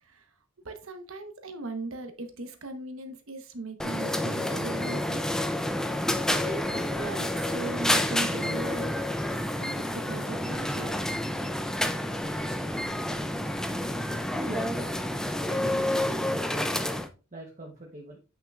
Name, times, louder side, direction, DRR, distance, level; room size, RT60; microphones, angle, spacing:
voice 1, 0.6-5.2 6.3-8.9 9.6-10.9, right 2 dB, 75° right, 1.1 m, -38 dB
sound 1, 3.8-17.1, left 1 dB, 5° left, 0.4 m, -29 dB
sound 2, 4.6-17.1, left 1 dB, 25° left, 1.7 m, -50 dB
voice 2, 14.3-14.9 15.5-16.8 17.3-18.2, right 1 dB, 35° right, 1.0 m, -42 dB
8.2 x 5.7 x 2.4 m
head